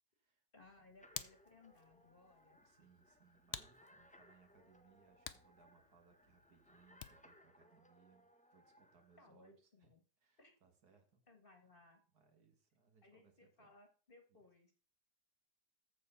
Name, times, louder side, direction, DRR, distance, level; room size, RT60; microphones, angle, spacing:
Hands, 0.5-7.4, left 9 dB, 60° left, 0.6 m, -54 dB
voice 1, 0.5-2.6 9.2-10.0 10.4-10.5 11.3-12.0 13.0-14.7, left 2 dB, 35° left, 5 dB, 1.6 m, -64 dB
sound 1, 1.0-9.2, left 1 dB, 10° left, 0.5 m, -67 dB
voice 2, 2.6-9.9 10.2-11.2 12.1-13.7 14.3-14.4, right 6 dB, 65° right, 6 dB, 2.2 m, -70 dB
14.0 x 4.7 x 5.7 m, 0.40 s
omnidirectional pair, 1.8 m